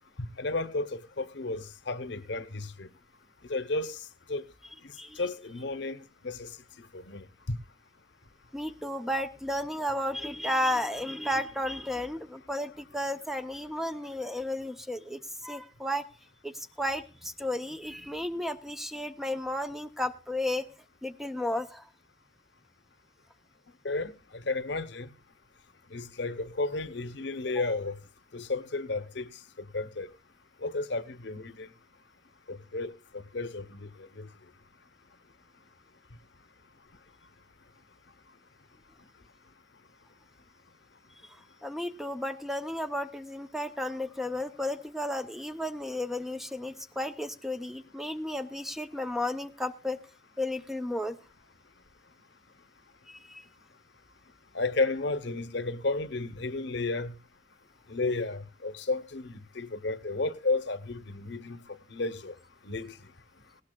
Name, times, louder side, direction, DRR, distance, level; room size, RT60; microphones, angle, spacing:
voice 1, 0.4-2.9 3.5-4.0 4.3-4.4 5.2-6.5 6.9-7.6 23.8-24.1 24.5-25.1 25.9-27.9 28.3-29.3 29.7-30.1 30.6-31.7 32.5-32.9 33.3-33.9 34.1-34.3 54.5-57.1 57.9-61.6 61.9-62.3 62.6-62.9, left 3 dB, 70° left, 0.9 m, -32 dB
voice 2, 8.5-16.1 16.4-20.7 21.0-21.9 41.6-50.0 50.4-51.2 53.1-53.5, left 1 dB, ahead, 0.7 m, -33 dB
18.5 x 17.5 x 2.3 m
head